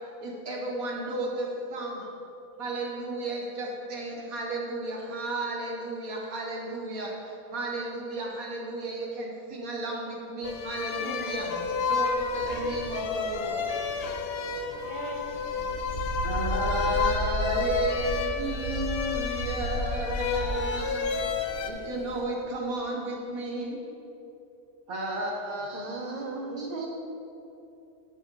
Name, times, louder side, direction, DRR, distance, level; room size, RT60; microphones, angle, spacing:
voice 1, 0.2-2.1 2.6-11.5 11.9-13.7 16.2-21.2 21.6-23.8 24.9-26.1 26.5-26.9, right 2 dB, 65° right, 1.8 m, -33 dB
sound 1, 10.4-21.7, left 5 dB, 65° left, 0.6 m, -31 dB
voice 2, 10.9-11.6 14.8-16.1 19.5-19.7, left 1 dB, 30° left, 0.7 m, -42 dB
sound 2, 11.3-22.2, right 1 dB, 50° right, 1.5 m, -35 dB
voice 3, 25.7-26.9, right 3 dB, 35° right, 0.8 m, -36 dB
8.7 x 8.7 x 3.2 m
omnidirectional pair, 1.6 m